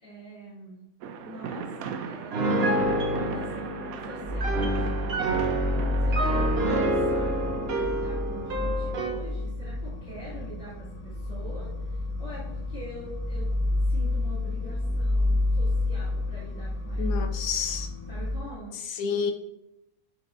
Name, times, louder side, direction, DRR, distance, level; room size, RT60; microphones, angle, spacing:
voice 1, 0.0-0.8 1.2-5.5 6.0-13.5 13.9-17.2 18.1-18.8, equal, 40° left, -14 dB, 2.8 m, -44 dB
sound 1, 1.0-6.8, right 6 dB, 80° right, 1.0 m, -38 dB
Piano, 2.3-9.2, right 1 dB, 50° right, 1.0 m, -28 dB
sound 2, 4.2-18.4, left 2 dB, 10° left, 1.2 m, -29 dB
voice 2, 17.0-17.9 18.9-19.3, left 6 dB, 80° left, 6 dB, 1.2 m, -29 dB
11.0 x 4.6 x 2.6 m, 0.89 s
omnidirectional pair, 1.5 m